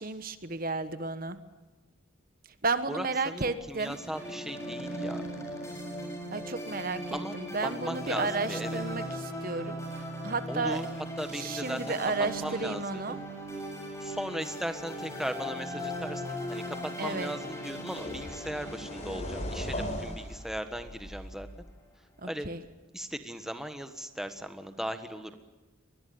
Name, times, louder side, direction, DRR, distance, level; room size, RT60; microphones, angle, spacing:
voice 1, 0.0-1.4 2.6-4.0 6.3-10.8 11.3-13.2 17.0-17.3 22.2-22.6, right 3 dB, 45° right, 11 dB, 1.2 m, -33 dB
voice 2, 2.9-5.2 7.1-7.4 7.6-8.8 10.5-10.9 11.2-12.0 12.4-13.0 14.0-21.5 22.2-22.5 22.9-25.4, equal, ahead, 8 dB, 1.4 m, -37 dB
sound 1, 3.8-21.2, equal, 15° left, 7.2 m, -38 dB
sound 2, 17.1-17.3 17.9-21.7, left 1 dB, 35° left, 4.2 m, -38 dB
24.5 x 20.5 x 9.3 m, 1.2 s
head